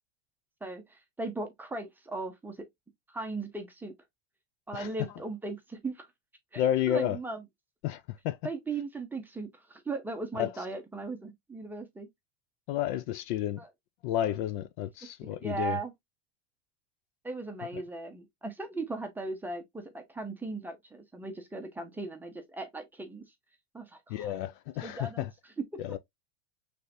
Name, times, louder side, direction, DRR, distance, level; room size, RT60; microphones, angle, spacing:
voice 1, 0.6-2.6 3.1-3.9 4.7-6.1 6.5-7.4 8.4-12.1 13.6-13.7 15.2-15.9 17.2-23.2 23.7-24.3 24.8-25.3 25.7-25.8, right 3 dB, 5° right, 0.7 m, -38 dB
voice 2, 6.6-7.2 7.8-8.4 10.4-10.5 12.7-13.6 14.0-15.8 17.7-17.8 24.1-25.3 25.8-26.0, left 11 dB, 50° left, 0.4 m, -31 dB
5.5 x 3.4 x 2.6 m
supercardioid pair, 155°, 32 cm